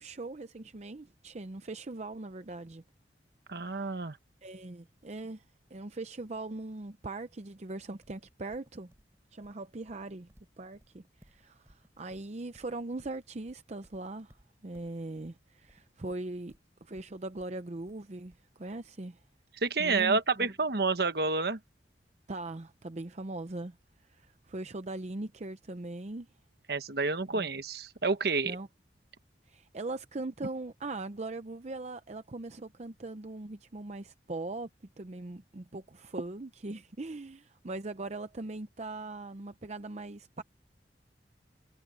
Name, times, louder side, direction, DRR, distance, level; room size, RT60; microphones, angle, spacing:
voice 1, 0.0-2.8 3.7-4.1 4.4-5.4 5.7-8.9 9.3-10.3 10.6-16.5 16.8-19.2 19.8-20.5 22.3-23.8 24.1-26.3 27.3-27.5 28.4-28.7 29.5-34.7 35.0-40.4, right 2 dB, 40° right, 0.7 m, -40 dB
voice 2, 3.5-4.2 19.6-21.6 26.7-28.6, right 4 dB, 60° right, 1.3 m, -29 dB
Livestock farm animals working animals, 8.0-18.9, equal, 15° right, 5.0 m, -63 dB
head